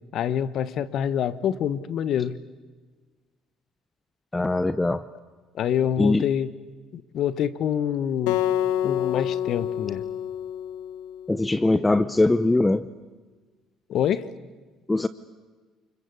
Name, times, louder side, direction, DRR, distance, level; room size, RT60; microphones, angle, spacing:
voice 1, 0.1-2.4 5.6-6.5 6.9-8.4 8.8-10.0 13.9-14.3, left 9 dB, 60° left, 16 dB, 1.2 m, -26 dB
voice 2, 4.3-5.1 6.0-6.3 11.3-12.9 14.9-15.1, left 2 dB, 15° left, 15 dB, 0.8 m, -21 dB
Acoustic guitar, 8.3-11.5, left 10 dB, 90° left, 1.3 m, -27 dB
29.0 x 22.0 x 8.4 m, 1.4 s
supercardioid pair, 90°, 0 cm